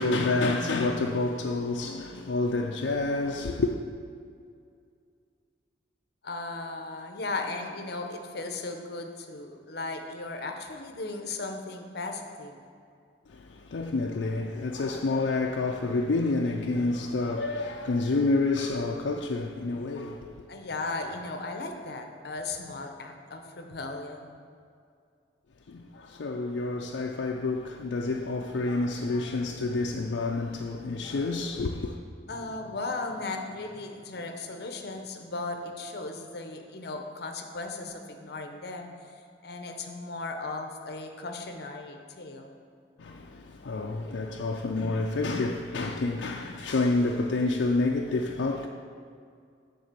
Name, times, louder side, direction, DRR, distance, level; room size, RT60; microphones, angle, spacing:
voice 1, 0.0-3.8 13.3-20.4 25.7-32.0 43.0-48.7, left 3 dB, 85° left, 0.5 m, -28 dB
voice 2, 6.2-12.6 20.5-24.4 32.3-38.9 39.4-42.5, left 3 dB, 60° left, 0.8 m, -36 dB
9.4 x 3.9 x 6.7 m
head